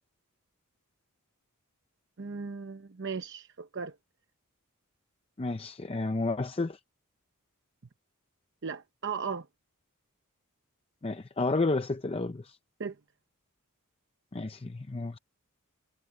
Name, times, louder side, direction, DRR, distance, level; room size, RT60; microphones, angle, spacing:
voice 1, 2.2-4.0 8.6-9.5 12.8-13.0, right 5 dB, 55° right, 0.8 m, -36 dB
voice 2, 5.4-6.8 11.0-12.6 14.3-15.2, left 3 dB, 25° left, 0.5 m, -31 dB
head